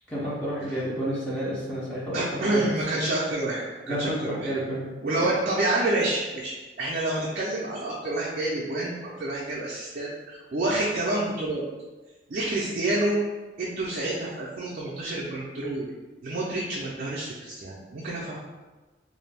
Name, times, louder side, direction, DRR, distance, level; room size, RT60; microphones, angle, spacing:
voice 1, 0.1-3.0 3.9-4.9, right 1 dB, 5° left, -9 dB, 0.5 m, -30 dB
voice 2, 2.1-4.5 5.0-11.6 12.3-13.2 13.6-15.9 16.2-18.4, right 2 dB, 50° right, -5 dB, 0.4 m, -28 dB
2.5 x 2.2 x 3.2 m, 1.2 s
head